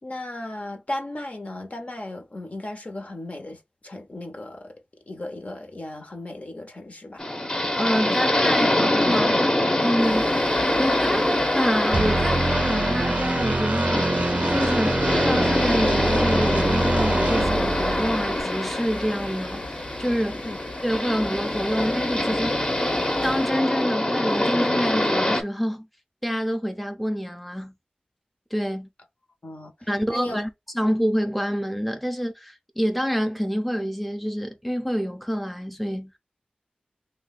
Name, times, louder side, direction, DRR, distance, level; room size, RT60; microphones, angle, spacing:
voice 1, 0.0-7.3 8.1-8.3 20.4-20.6 29.4-30.4, left 1 dB, 50° left, 0.9 m, -36 dB
sound 1, 7.2-25.4, left 1 dB, 25° left, 0.9 m, -24 dB
voice 2, 7.8-9.4 9.8-10.2 10.8-20.5 20.8-22.7 23.2-25.9 26.2-27.7 28.5-28.9 29.9-36.1, equal, ahead, 0.6 m, -27 dB
sound 2, 10.0-23.5, left 2 dB, 85° left, 1.3 m, -40 dB
sound 3, 11.9-18.4, right 2 dB, 50° right, 0.5 m, -25 dB
2.7 x 2.2 x 4.0 m
cardioid pair, 40°, 3 cm